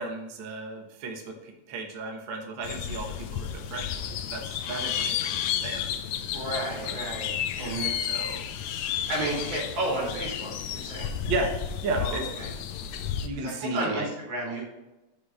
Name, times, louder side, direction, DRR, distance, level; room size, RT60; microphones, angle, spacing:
voice 1, 0.0-5.9 6.8-7.0 8.0-8.5 11.3-11.5 11.8-12.4 13.2-14.1, right 3 dB, 55° right, 3 dB, 1.5 m, -34 dB
sound 1, 2.6-13.3, left 9 dB, 80° left, 1.9 m, -32 dB
voice 2, 6.3-8.0 9.1-11.1 12.0-12.5 13.4-14.6, right 1 dB, 80° right, -2 dB, 4.0 m, -32 dB
6.9 x 5.2 x 6.3 m, 1.0 s
omnidirectional pair, 3.4 m